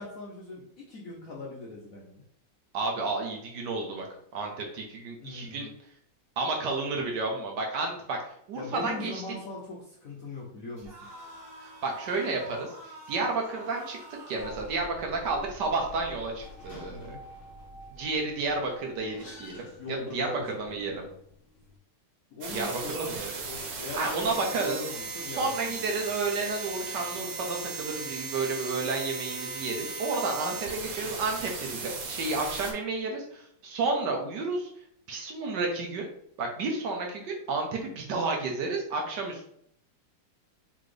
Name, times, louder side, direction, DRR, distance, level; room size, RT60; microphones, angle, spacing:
voice 1, 0.0-2.2 5.2-5.7 8.5-11.0 16.9-17.2 19.7-20.5 22.3-23.2 23.5-25.7, left 2 dB, 65° left, -3 dB, 0.9 m, -40 dB
voice 2, 2.7-4.1 4.3-5.7 6.4-9.2 11.6-12.7 13.1-14.0 14.3-17.2 17.9-20.3 20.6-21.1 22.5-23.3 23.9-24.8 25.3-34.7 35.1-36.1 36.4-39.5, right 3 dB, 65° right, 1 dB, 1.2 m, -31 dB
sound 1, 10.8-14.8, right 1 dB, 40° right, 1.4 m, -46 dB
sound 2, 14.4-21.8, left 1 dB, 40° left, 0.9 m, -48 dB
sound 3, 22.4-32.7, right 4 dB, 85° right, 1.8 m, -37 dB
4.0 x 3.8 x 3.2 m, 0.70 s
omnidirectional pair, 2.3 m